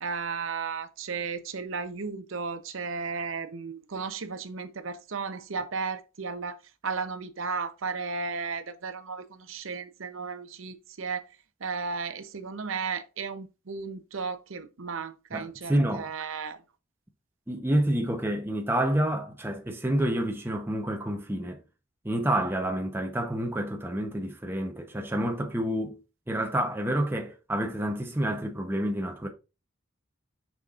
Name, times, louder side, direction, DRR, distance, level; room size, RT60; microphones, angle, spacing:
voice 1, 0.0-6.6 6.8-11.3 11.6-16.6, right 5 dB, 70° right, 0.7 m, -34 dB
voice 2, 15.3-16.1 17.5-21.6 22.0-26.0 26.3-29.3, right 1 dB, 10° right, 0.8 m, -28 dB
6.7 x 5.8 x 2.5 m
head